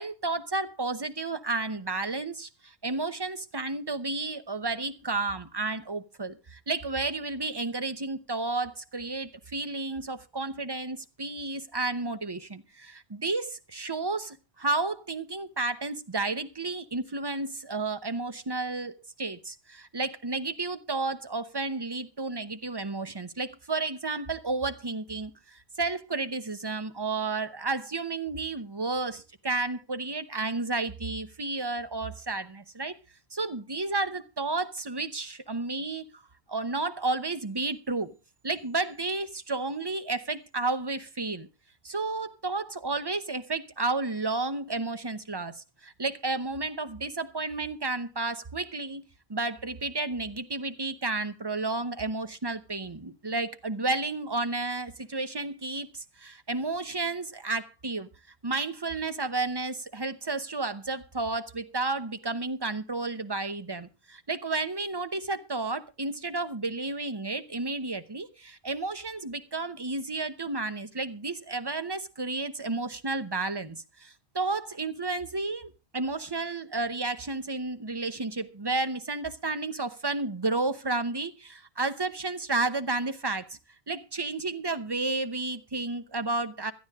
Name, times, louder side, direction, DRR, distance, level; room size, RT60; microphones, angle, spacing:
voice 1, 0.0-33.0 33.3-36.2 36.5-38.1 38.4-41.5 41.8-49.0 49.3-58.1 58.4-83.6 83.9-86.7, right 3 dB, 25° right, 0.8 m, -32 dB
16.5 x 12.5 x 3.6 m
omnidirectional pair, 1.1 m